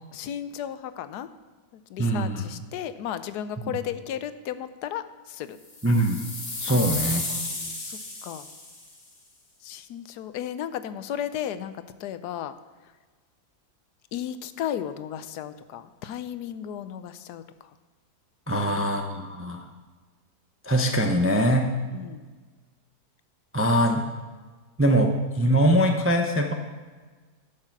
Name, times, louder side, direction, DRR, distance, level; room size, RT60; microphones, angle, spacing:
voice 1, 0.1-1.3 1.7-5.6 6.7-8.5 9.6-12.5 14.1-17.7 18.5-18.9 21.9-22.3, left 10 dB, 80° left, 12 dB, 1.2 m, -35 dB
voice 2, 2.0-2.4 5.8-6.2 6.6-7.2 18.5-19.7 20.6-21.7 23.5-24.1 24.8-26.5, equal, 20° right, 3 dB, 0.4 m, -22 dB
sound 1, 5.7-8.9, left 2 dB, 45° left, 2.0 m, -33 dB
12.0 x 6.7 x 5.9 m, 1.4 s
omnidirectional pair, 1.7 m